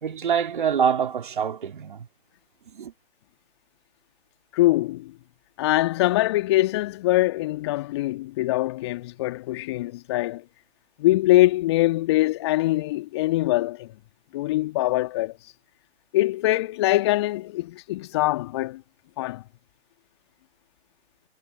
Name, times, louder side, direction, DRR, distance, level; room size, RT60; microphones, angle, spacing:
voice 1, 0.0-2.1 2.7-2.9, right 7 dB, 50° right, 3.0 m, -25 dB
voice 2, 4.5-5.1 5.6-10.4 11.0-13.9 14.3-15.3 16.1-18.8 19.2-19.4, left 17 dB, 25° left, 1.8 m, -23 dB
figure-of-eight pair, 140°, 33 cm